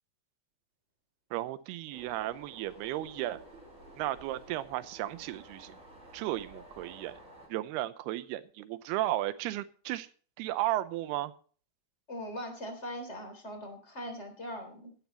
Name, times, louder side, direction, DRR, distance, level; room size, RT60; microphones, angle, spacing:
voice 1, 1.3-3.4 4.0-5.7 6.1-7.2 7.5-10.1 10.4-11.3, right 15 dB, 80° right, 13 dB, 2.8 m, -34 dB
sound 1, 1.9-7.5, right 1 dB, 20° right, 6.6 m, -52 dB
voice 2, 12.1-14.9, equal, 20° left, 6 dB, 3.1 m, -41 dB
16.5 x 13.0 x 3.0 m, 0.41 s
omnidirectional pair, 4.7 m